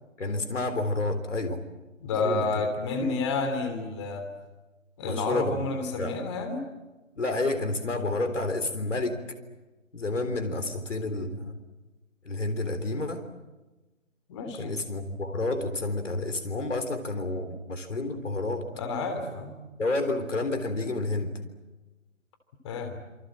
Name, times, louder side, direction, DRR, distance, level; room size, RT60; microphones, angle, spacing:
voice 1, 0.2-1.6 2.1-2.5 3.0-3.2 5.0-5.6 6.0-6.2 7.2-9.2 9.9-11.6 12.2-13.2 14.6-18.7 19.8-21.4, left 2 dB, 65° left, 8 dB, 3.7 m, -30 dB
voice 2, 2.0-4.3 5.0-6.6 14.3-14.7 18.7-19.5 22.6-23.0, left 3 dB, 20° left, 7 dB, 3.3 m, -30 dB
27.5 x 25.5 x 7.7 m, 1.2 s
figure-of-eight pair, 155°, 39 cm